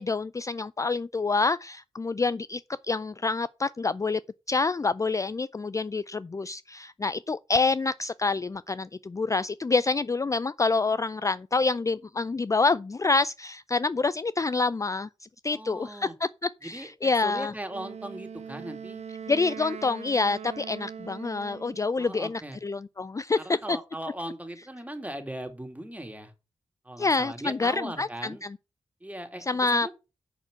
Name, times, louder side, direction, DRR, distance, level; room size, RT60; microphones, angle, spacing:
voice 1, 0.0-4.2 4.5-17.5 19.3-23.8 27.0-28.6 29.5-29.9, left 3 dB, 30° left, 0.4 m, -27 dB
voice 2, 15.5-16.1 16.6-19.0 22.0-22.6 23.4-26.3 26.8-28.4 29.0-29.9, right 1 dB, 15° right, 2.6 m, -39 dB
Wind instrument woodwind instrument, 17.7-21.9, right 7 dB, 75° right, 0.9 m, -41 dB
6.5 x 6.1 x 6.2 m
cardioid pair, 40°, 11 cm